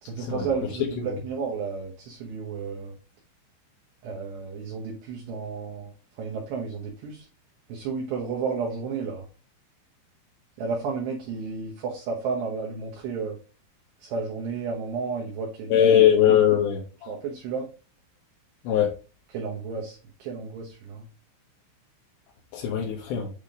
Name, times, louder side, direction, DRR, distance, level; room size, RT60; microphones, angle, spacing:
voice 1, 0.0-2.9 4.0-7.3 7.7-9.3 10.6-13.4 14.0-15.9 16.3-16.4 17.1-17.7 19.3-21.1, right 5 dB, 70° right, 2.9 m, -32 dB
voice 2, 15.7-17.1 18.6-18.9 22.5-23.3, left 9 dB, 70° left, 3.0 m, -20 dB
8.4 x 3.6 x 3.6 m
omnidirectional pair, 5.6 m